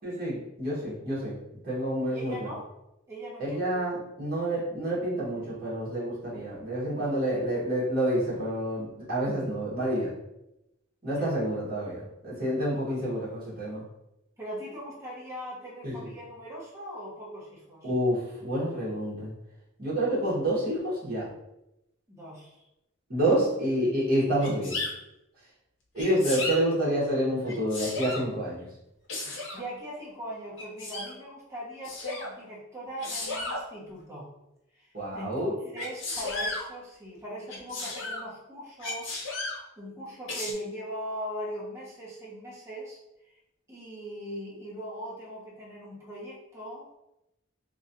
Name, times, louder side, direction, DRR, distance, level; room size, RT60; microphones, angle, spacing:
voice 1, 0.0-1.3 1.6-2.5 3.4-10.1 11.0-13.8 15.8-16.1 17.8-19.3 19.8-21.3 23.1-24.8 25.9-28.7 34.9-35.8, right 1 dB, 45° right, -7 dB, 1.3 m, -28 dB
voice 2, 2.1-2.6 3.1-3.7 11.1-11.3 14.4-17.9 22.1-22.6 23.2-23.4 29.5-34.3 34.7-39.2 39.8-43.0 43.7-47.0, equal, 15° right, -7 dB, 0.9 m, -40 dB
Sneeze, 24.4-24.9 26.0-26.6 27.4-28.3 29.1-29.6 30.6-31.1 31.8-32.3 33.0-33.6 35.8-36.6 37.5-38.2 38.8-39.6 40.3-40.5, left 2 dB, 65° left, 0.7 m, -34 dB
3.0 x 2.7 x 2.6 m, 0.88 s
head